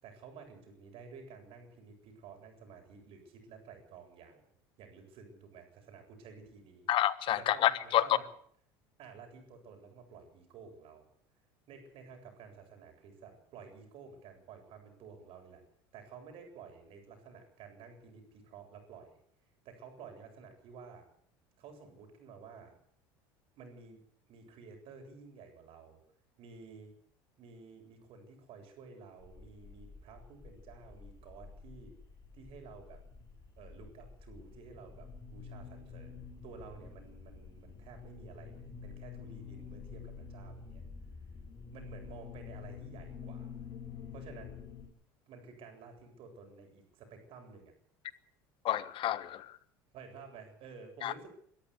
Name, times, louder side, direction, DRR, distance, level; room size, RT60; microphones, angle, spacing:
voice 1, 0.0-4.5 4.8-6.9 7.3-8.2 9.0-11.1 11.7-15.6 15.9-19.2 19.6-21.1 21.6-22.7 23.6-24.0 24.3-26.0 26.4-26.9 27.4-31.9 32.3-33.0 33.6-36.2 36.4-40.8 41.7-43.5 44.1-44.6 45.3-47.7 49.9-51.3, right 5 dB, 60° right, 8.0 m, -52 dB
voice 2, 6.9-8.0 48.6-49.4 51.0-51.1, left 12 dB, 50° left, 1.3 m, -29 dB
sound 1, 29.2-44.9, left 6 dB, 35° left, 7.5 m, -49 dB
24.0 x 13.5 x 8.4 m
hypercardioid pair, 85°, 11 cm